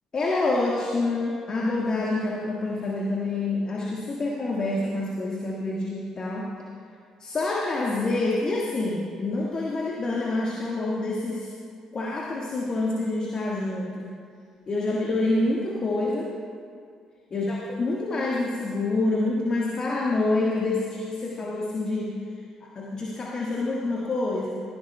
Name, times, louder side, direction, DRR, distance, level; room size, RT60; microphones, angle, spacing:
voice 1, 0.1-6.5 7.2-11.5 11.9-14.1 14.7-16.3 17.3-22.1 22.6-24.6, left 2 dB, 40° left, -3 dB, 1.5 m, -27 dB
17.5 x 15.5 x 2.2 m, 2.2 s
figure-of-eight pair, 45°, 2 cm